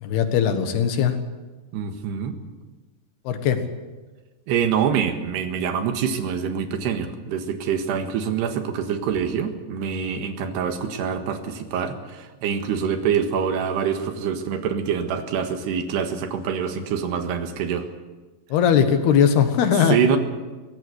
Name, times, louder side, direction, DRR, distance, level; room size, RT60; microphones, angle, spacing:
voice 1, 0.0-1.2 3.3-3.6 18.5-20.0, left 8 dB, 75° left, 8 dB, 3.5 m, -19 dB
voice 2, 1.7-2.4 4.5-17.9 19.9-20.2, right 7 dB, 80° right, 6 dB, 3.7 m, -25 dB
22.0 x 17.0 x 8.0 m, 1.2 s
omnidirectional pair, 4.7 m